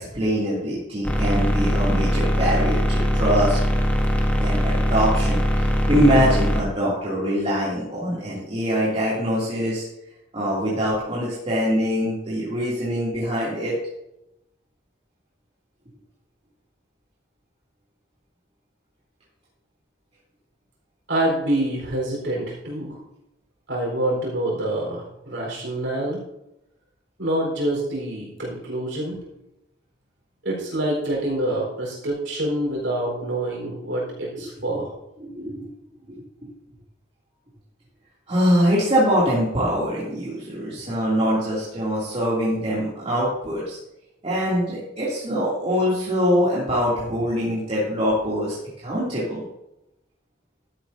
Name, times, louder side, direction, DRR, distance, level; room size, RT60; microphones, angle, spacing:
voice 1, 0.0-3.6 4.4-9.8 10.3-13.7 35.2-35.6 36.1-36.5 38.3-43.8 44.2-48.6 48.8-49.4, equal, 35° right, -8 dB, 2.7 m, -23 dB
sound 1, 1.0-6.6, equal, 10° left, 1.1 m, -21 dB
voice 2, 21.1-23.0 23.7-26.2 27.2-29.2 30.4-34.9, right 1 dB, 80° right, -2 dB, 4.2 m, -26 dB
12.5 x 9.8 x 2.7 m, 0.85 s
head